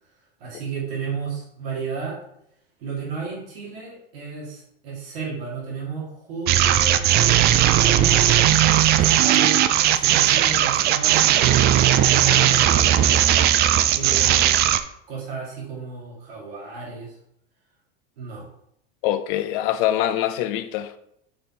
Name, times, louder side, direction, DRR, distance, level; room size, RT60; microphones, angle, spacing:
voice 1, 0.4-2.2 2.8-7.3 7.6-8.3 8.9-11.7 12.1-13.2 13.5-14.6 15.1-17.2 18.2-18.5, right 5 dB, 80° right, 2.5 m, -33 dB
sound 1, 6.5-14.8, right 11 dB, 35° right, 0.4 m, -17 dB
voice 2, 19.0-21.0, left 12 dB, 60° left, 0.6 m, -24 dB
5.4 x 4.1 x 4.3 m
supercardioid pair, 115°, 30 cm